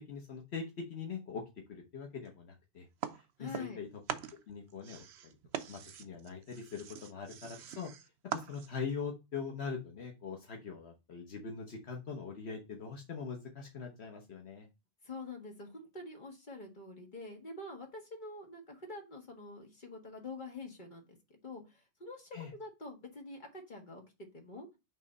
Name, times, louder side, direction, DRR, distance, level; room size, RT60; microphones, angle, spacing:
voice 1, 0.1-1.4 1.7-2.9 3.1-3.9 4.5-7.9 8.3-14.7 22.3-22.5, left 5 dB, 70° left, 2 dB, 1.2 m, -42 dB
sound 1, 3.0-8.9, right 9 dB, 75° right, 0.9 m, -42 dB
voice 2, 3.4-3.8 15.0-24.0 24.3-24.7, left 3 dB, 45° left, 2 dB, 1.7 m, -46 dB
5.9 x 3.2 x 5.3 m, 0.25 s
omnidirectional pair, 1.1 m